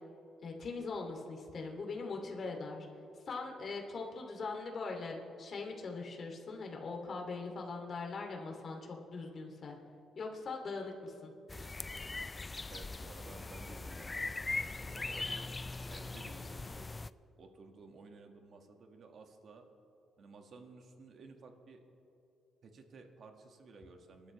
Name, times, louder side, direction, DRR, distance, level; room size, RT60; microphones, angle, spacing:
voice 1, 0.4-2.9 3.3-9.8 10.2-11.3, left 3 dB, 50° left, 1 dB, 2.5 m, -41 dB
sound 1, 11.5-17.1, left 3 dB, 20° left, 0.3 m, -40 dB
voice 2, 12.7-15.4 15.9-16.9 17.4-19.7 20.2-21.8 22.6-24.3, right 4 dB, 55° right, 4 dB, 1.7 m, -55 dB
23.5 x 12.0 x 3.2 m, 2.8 s
cardioid pair, 90°, 0 cm